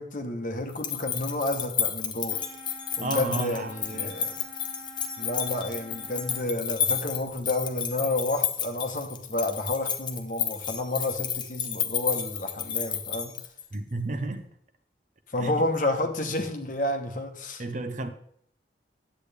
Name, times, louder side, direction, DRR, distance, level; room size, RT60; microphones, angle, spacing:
voice 1, 0.0-2.4 3.0-4.3 5.2-13.3 15.3-17.6, left 2 dB, 45° left, 1.1 m, -30 dB
sound 1, 0.7-13.7, left 8 dB, 25° left, 0.8 m, -31 dB
sound 2, 2.3-6.4, right 1 dB, 70° right, 1.7 m, -47 dB
voice 2, 3.0-4.1 13.7-14.4 15.4-15.5 17.6-18.1, right 2 dB, 45° right, 0.8 m, -32 dB
10.0 x 8.2 x 3.4 m
head